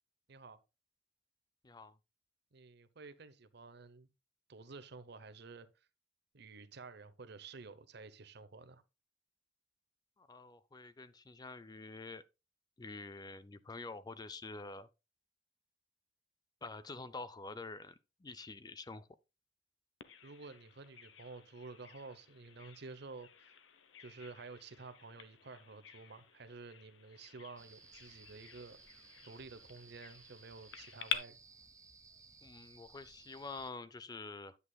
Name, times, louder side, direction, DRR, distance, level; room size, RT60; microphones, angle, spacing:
voice 1, 0.3-0.6 2.5-4.1 4.5-5.7 6.3-8.8 20.2-23.5 24.0-28.8 29.2-31.4, right 4 dB, 60° right, 0.8 m, -51 dB
voice 2, 10.2-12.2 12.8-14.9 16.6-19.1 32.4-34.6, left 3 dB, 20° left, 0.4 m, -47 dB
Bird vocalization bird call bird song, 20.0-31.2, left 8 dB, 90° left, 0.9 m, -48 dB
sound 1, 27.6-33.7, right 4 dB, 20° right, 0.9 m, -59 dB
9.6 x 8.3 x 2.3 m
head